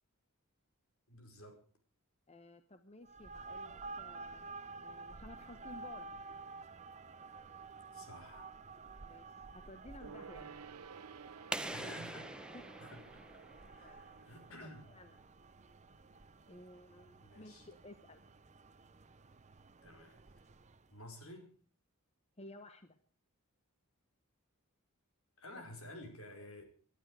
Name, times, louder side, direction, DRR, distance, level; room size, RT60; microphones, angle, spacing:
voice 1, 1.1-1.6 7.9-8.5 11.7-12.3 12.8-13.0 13.7-14.8 17.2-17.7 19.8-20.5 20.9-21.5 25.4-26.6, left 1 dB, 70° left, 5 dB, 5.0 m, -51 dB
voice 2, 2.3-4.5 4.8-6.1 9.0-10.6 12.5-12.6 13.8-14.0 14.6-15.2 16.5-18.2 22.4-23.0 25.5-25.6, left 1 dB, 30° left, 9 dB, 1.0 m, -55 dB
sound 1, 3.0-21.0, right 3 dB, 30° right, 0.8 m, -52 dB
Gong, 10.0-15.9 16.2-16.3, right 6 dB, 90° right, 0.7 m, -55 dB
sound 2, 11.5-14.2, right 1 dB, 5° right, 0.9 m, -44 dB
23.0 x 12.0 x 4.8 m, 0.42 s
head